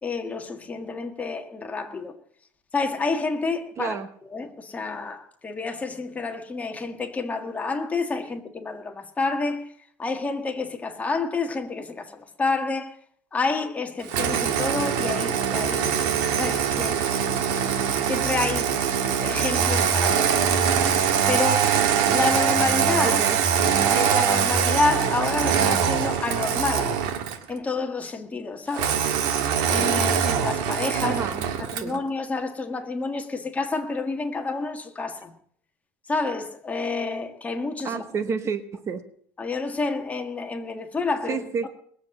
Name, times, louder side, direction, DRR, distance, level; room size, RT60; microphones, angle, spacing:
voice 1, 0.0-2.1 2.7-4.0 4.3-9.7 10.0-13.0 13.3-16.0 16.4-17.0 17.5-17.8 18.0-18.7 19.1-20.4 21.3-21.7 22.1-23.2 23.9-27.0 27.5-29.0 29.7-31.2 31.6-35.3 36.1-38.0 39.4-41.4, left 3 dB, 15° left, 1.7 m, -29 dB
voice 2, 3.8-4.1 23.0-23.4 31.0-31.5 31.8-32.0 37.8-39.0 41.3-41.7, right 6 dB, 30° right, 1.0 m, -29 dB
Engine starting, 14.1-27.5 28.7-32.0, right 7 dB, 75° right, 1.8 m, -23 dB
20.0 x 7.8 x 7.8 m
cardioid pair, 145°, 9 cm